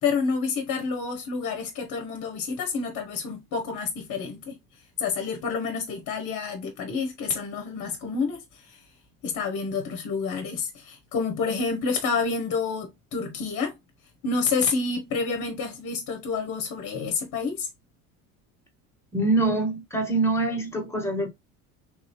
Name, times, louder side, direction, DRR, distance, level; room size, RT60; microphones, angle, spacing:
voice 1, 0.0-4.6 5.0-8.8 9.2-13.7 14.2-17.7, left 5 dB, 50° left, 1.0 m, -29 dB
voice 2, 19.1-21.3, right 2 dB, 5° left, 1.6 m, -24 dB
3.6 x 2.7 x 3.1 m
hypercardioid pair, 75°, 40 cm